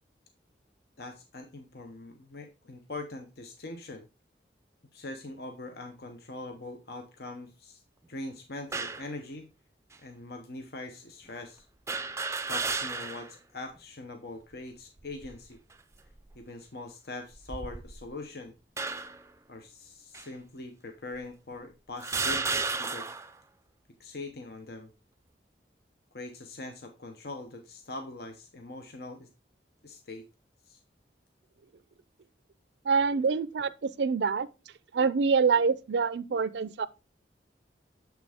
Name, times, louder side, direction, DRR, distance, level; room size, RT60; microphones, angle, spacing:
voice 1, 1.0-4.1 4.9-7.8 8.1-9.5 10.0-11.6 12.5-15.6 16.3-18.5 19.5-23.1 24.0-24.9 26.1-29.3 29.8-30.3 30.7-30.8, left 2 dB, 60° left, 1.0 m, -42 dB
sound 1, 8.7-9.1 9.9-10.0 11.9-13.3 13.8-13.9 15.0-15.4 16.1-16.4 17.3-18.1 18.8-19.3 20.1-20.3 21.2-21.3 22.0-23.3, right 4 dB, 15° right, 0.4 m, -33 dB
voice 2, 32.8-34.5 34.9-36.9, right 5 dB, 75° right, 0.5 m, -26 dB
7.5 x 6.0 x 3.5 m
head